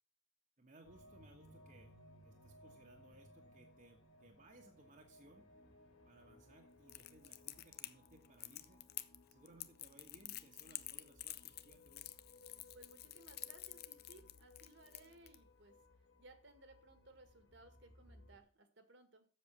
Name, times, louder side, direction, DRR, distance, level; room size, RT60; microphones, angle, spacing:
voice 1, 0.6-2.0 2.2-5.5 6.0-8.8 9.3-12.2, right 1 dB, 40° right, 2 dB, 1.3 m, -63 dB
sound 1, 0.8-18.4, left 1 dB, 75° left, 2.4 m, -63 dB
Crackle, 6.9-15.3, left 15 dB, 50° left, 0.6 m, -49 dB
voice 2, 12.7-15.7 16.2-19.3, right 2 dB, 60° right, 8 dB, 1.8 m, -62 dB
7.7 x 7.2 x 7.3 m, 0.41 s
head